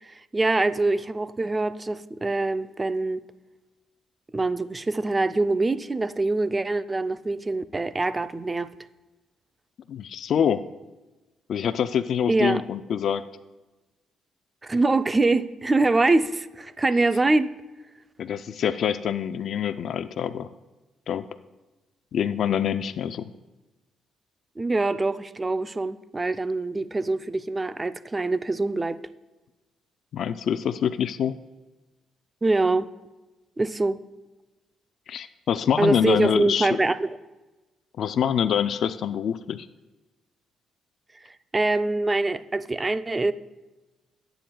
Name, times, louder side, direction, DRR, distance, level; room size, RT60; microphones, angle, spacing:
voice 1, 0.0-3.2 4.3-8.7 12.3-12.6 14.6-17.5 24.6-29.0 32.4-32.9 33.6-34.0 35.8-37.2 41.5-43.3, right 2 dB, 20° right, 12 dB, 0.5 m, -24 dB
voice 2, 9.9-10.6 11.5-13.2 18.2-20.5 21.1-21.2 22.1-23.3 30.1-31.4 35.1-36.8 38.0-39.7, left 8 dB, 65° left, 12 dB, 0.4 m, -25 dB
21.5 x 9.1 x 2.3 m, 1.1 s
cardioid pair, 90°, 0 cm